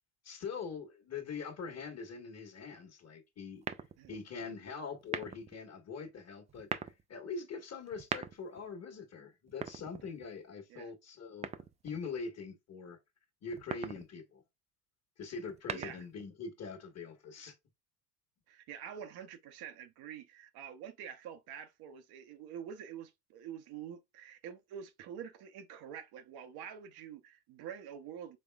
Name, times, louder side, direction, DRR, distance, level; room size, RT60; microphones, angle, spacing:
voice 1, 0.2-3.7 4.1-11.5 11.8-13.0 13.4-14.4 15.2-17.5, left 5 dB, 35° left, 1.5 m, -43 dB
sound 1, 3.6-4.2 5.0-5.6 6.5-7.0 7.9-8.6 9.5-10.4 11.4-12.0 13.5-14.1 15.4-16.2, right 7 dB, 15° right, 0.3 m, -41 dB
voice 2, 15.7-16.1 18.5-28.4, right 8 dB, 55° right, 0.8 m, -47 dB
5.3 x 3.6 x 2.3 m
hypercardioid pair, 80°, 44 cm